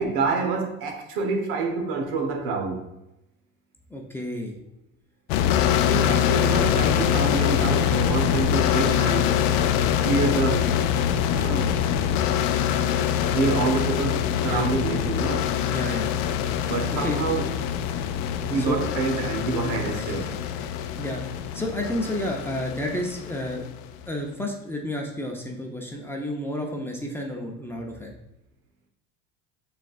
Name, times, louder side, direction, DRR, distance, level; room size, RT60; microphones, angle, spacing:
voice 1, 0.0-2.9 5.9-9.4 10.0-10.6 11.3-12.1 13.3-15.5 16.7-17.5 18.4-20.3, right 4 dB, 70° right, 2 dB, 1.0 m, -27 dB
voice 2, 3.9-4.5 10.3-10.6 14.4-14.7 15.7-16.1 17.0-17.2 18.6-18.9 19.9-20.3 20.5-20.6 21.0-21.2 21.5-23.6 24.1-28.1, left 1 dB, 5° left, 0 dB, 0.7 m, -31 dB
sound 1, 5.3-23.9, left 9 dB, 65° left, 0.5 m, -24 dB
5.9 x 3.4 x 2.4 m, 0.92 s
supercardioid pair, 95°, 37 cm